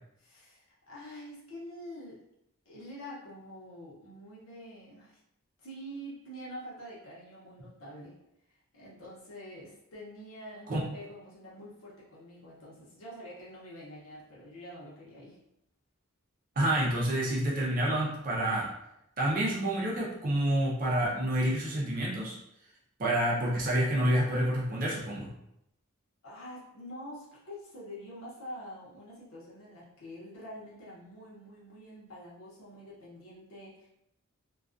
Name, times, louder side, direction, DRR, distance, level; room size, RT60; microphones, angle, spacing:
voice 1, 0.2-2.2 2.7-5.2 5.6-8.2 8.7-15.4 26.2-33.9, equal, 70° left, -7 dB, 0.8 m, -46 dB
voice 2, 16.6-18.7 19.2-22.4 23.0-25.3, right 1 dB, 40° right, -4 dB, 0.5 m, -28 dB
2.3 x 2.2 x 2.4 m, 0.81 s
head